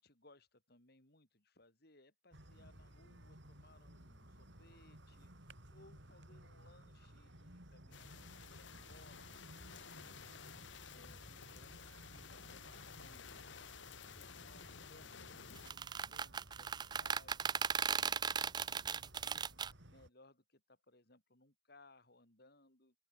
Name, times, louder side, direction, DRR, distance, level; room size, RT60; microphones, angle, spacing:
voice 1, 0.0-15.1 15.7-19.5 19.9-22.9, left 2 dB, 55° left, 6.3 m, -66 dB
sound 1, 2.3-20.1, right 1 dB, 70° right, 6.3 m, -58 dB
sound 2, 7.9-15.7, left 7 dB, 75° left, 1.3 m, -54 dB
sound 3, 15.6-19.7, right 6 dB, 20° right, 0.4 m, -37 dB
open air
head